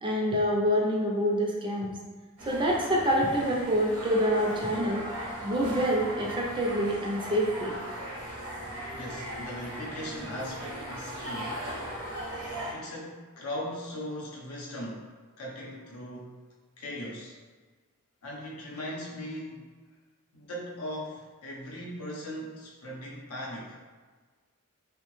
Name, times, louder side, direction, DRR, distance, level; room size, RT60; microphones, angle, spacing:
voice 1, 0.0-1.9 2.5-5.0 5.4-7.7, equal, 20° right, -2 dB, 0.4 m, -26 dB
sound 1, 2.4-12.7, right 1 dB, 70° right, 0.8 m, -38 dB
voice 2, 8.8-11.7 12.7-15.1 15.4-16.3 16.8-17.4 18.2-19.7 20.3-23.8, equal, 80° left, -4 dB, 0.7 m, -39 dB
2.7 x 2.1 x 3.0 m, 1.4 s
head